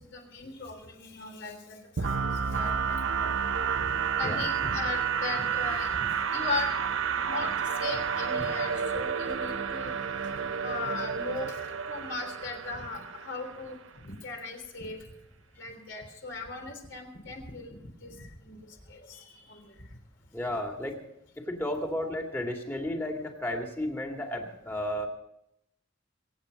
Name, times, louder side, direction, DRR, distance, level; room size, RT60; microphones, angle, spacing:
voice 1, 0.0-3.5 3.8-6.7 7.3-9.9 10.6-15.0 15.6-18.6 18.9-19.6, left 3 dB, 65° left, 3 dB, 3.4 m, -38 dB
sound 1, 2.0-13.7, right 7 dB, 80° right, 0.8 m, -30 dB
voice 2, 20.3-21.0 21.4-25.1, left 1 dB, 10° left, 2 dB, 2.1 m, -33 dB
24.0 x 9.0 x 5.2 m, 0.79 s
head